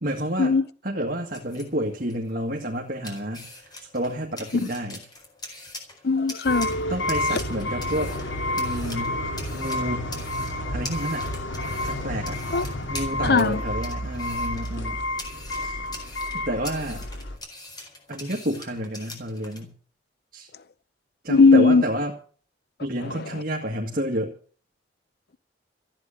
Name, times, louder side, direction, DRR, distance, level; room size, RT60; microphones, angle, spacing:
voice 1, 0.0-0.6 0.8-5.0 6.9-8.1 8.6-9.2 9.5-10.1 10.7-11.3 11.8-12.4 12.9-15.0 15.5-15.9 16.3-17.1 18.1-19.7 20.3-20.5 21.2-22.2 22.8-24.3, right 1 dB, 50° right, 2.0 m, -30 dB
sound 1, 1.1-19.6, left 2 dB, 20° left, 4.5 m, -43 dB
voice 2, 6.0-6.9 7.3-7.4 12.5-12.6 13.3-13.6 21.3-21.8, left 4 dB, 55° left, 0.7 m, -18 dB
sound 2, 6.5-17.4, left 1 dB, 90° left, 2.8 m, -30 dB
15.0 x 9.0 x 8.4 m
head